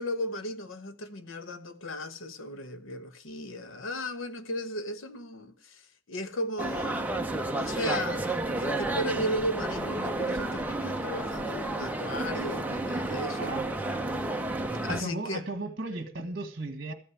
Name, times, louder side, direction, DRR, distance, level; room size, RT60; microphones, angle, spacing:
voice 1, 0.0-5.8 6.1-7.0 7.5-8.3 8.6-13.5 14.8-15.4, equal, 75° left, 1.0 m, -35 dB
sound 1, 6.6-15.0, right 2 dB, 10° right, 0.8 m, -31 dB
voice 2, 13.4-13.7 14.7-16.9, right 2 dB, 45° right, 1.7 m, -36 dB
14.5 x 5.6 x 9.5 m
head